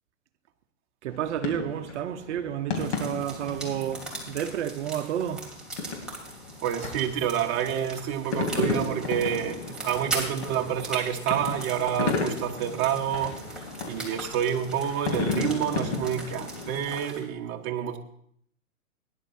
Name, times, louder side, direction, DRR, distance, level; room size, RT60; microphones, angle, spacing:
voice 1, 1.0-5.5, right 10 dB, 55° right, 0.9 m, -31 dB
sound 1, 1.1-16.8, left 4 dB, 55° left, 3.3 m, -34 dB
sound 2, 2.7-17.2, right 2 dB, ahead, 2.8 m, -40 dB
voice 2, 6.6-13.4 13.8-18.0, right 9 dB, 35° right, 1.4 m, -28 dB
18.5 x 10.5 x 2.8 m
hypercardioid pair, 120°, 41 cm